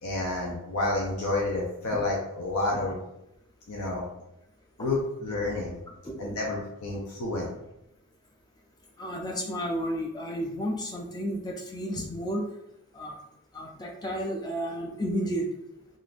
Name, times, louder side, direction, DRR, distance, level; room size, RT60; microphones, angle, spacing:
voice 1, 0.0-3.0 3.7-4.1 4.8-5.8 6.2-7.5, left 2 dB, 75° left, -2 dB, 0.6 m, -29 dB
voice 2, 9.0-12.5 12.9-13.2 13.5-15.5, equal, 20° left, 1 dB, 0.4 m, -32 dB
3.8 x 2.5 x 2.4 m, 0.85 s
head